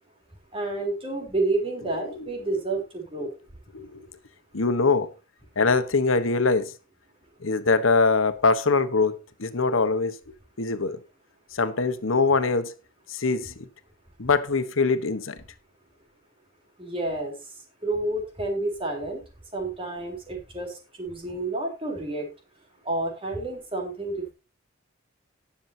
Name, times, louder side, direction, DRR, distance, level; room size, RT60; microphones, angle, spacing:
voice 1, 0.5-3.3 16.8-17.3 17.8-19.2 19.5-20.7 21.0-22.3 22.9-24.3, right 2 dB, 30° right, 3.8 m, -29 dB
voice 2, 3.7-4.1 4.5-5.1 5.6-6.7 7.4-11.0 11.5-12.7 13.1-13.5 14.2-15.3, left 4 dB, 85° left, 1.2 m, -23 dB
19.0 x 7.1 x 2.8 m
head